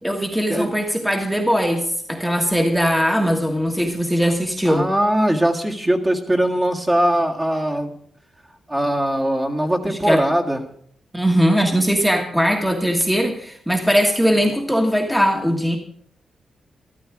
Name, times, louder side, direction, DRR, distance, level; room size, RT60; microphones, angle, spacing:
voice 1, 0.0-4.9 9.9-10.2 11.1-15.8, equal, 5° right, 2 dB, 1.5 m, -20 dB
voice 2, 4.6-7.9 8.7-10.6, right 1 dB, 20° right, 0 dB, 1.9 m, -20 dB
13.5 x 12.5 x 4.8 m, 0.65 s
cardioid pair, 105°, 0 cm